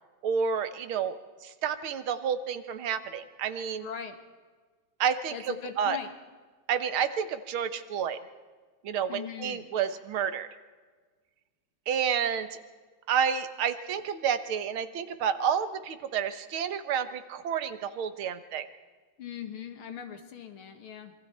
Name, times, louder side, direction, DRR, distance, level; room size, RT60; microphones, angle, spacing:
voice 1, 0.2-3.9 5.0-6.0 6.7-8.2 8.8-10.5 11.9-12.6 13.1-18.7, right 7 dB, 80° right, 10 dB, 2.0 m, -30 dB
voice 2, 3.8-4.2 5.3-6.1 9.1-9.7 19.2-21.1, left 8 dB, 85° left, 7 dB, 2.4 m, -40 dB
26.0 x 23.5 x 4.4 m, 1.4 s
omnidirectional pair, 2.3 m